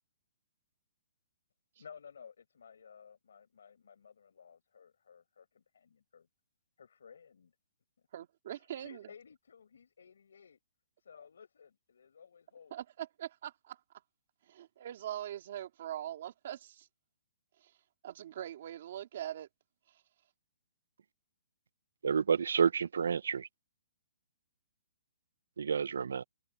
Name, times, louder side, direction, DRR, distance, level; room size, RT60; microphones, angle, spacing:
voice 1, 1.8-6.3 6.8-7.5 8.5-10.6 11.0-12.7, left 6 dB, 75° left, 5.0 m, -56 dB
voice 2, 8.1-9.0 12.7-13.8 14.5-16.9 17.6-17.7 18.0-19.5 19.9-20.0, right 11 dB, 40° right, 2.4 m, -42 dB
voice 3, 22.0-23.5 25.6-26.2, right 6 dB, 80° right, 0.8 m, -29 dB
hypercardioid pair, 175°, 0 cm